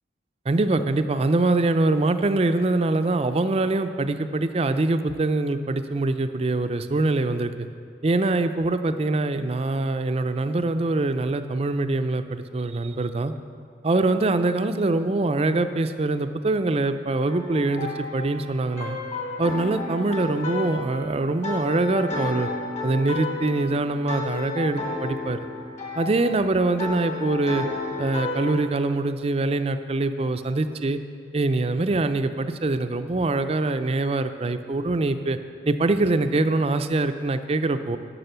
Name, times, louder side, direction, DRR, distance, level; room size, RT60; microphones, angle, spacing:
voice 1, 0.5-7.7 8.0-13.3 13.8-19.0 19.4-22.5 22.8-25.5 26.0-27.7 28.0-31.0 31.3-35.4 35.7-38.0, right 2 dB, 35° right, 9 dB, 0.4 m, -24 dB
sound 1, 17.3-28.5, left 2 dB, 40° left, 1.7 m, -33 dB
11.0 x 6.2 x 7.9 m, 2.2 s
head